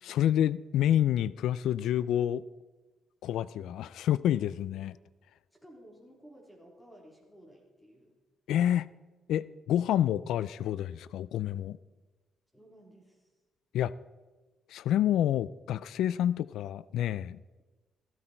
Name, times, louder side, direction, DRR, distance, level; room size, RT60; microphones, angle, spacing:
voice 1, 0.0-2.4 3.2-5.0 8.5-8.9 9.3-11.8 13.7-13.9 14.7-17.4, left 11 dB, 80° left, 0.3 m, -28 dB
voice 2, 5.5-8.1 12.5-13.3, equal, 5° left, 3.6 m, -55 dB
15.0 x 12.5 x 4.4 m
cardioid pair, 90°, 0 cm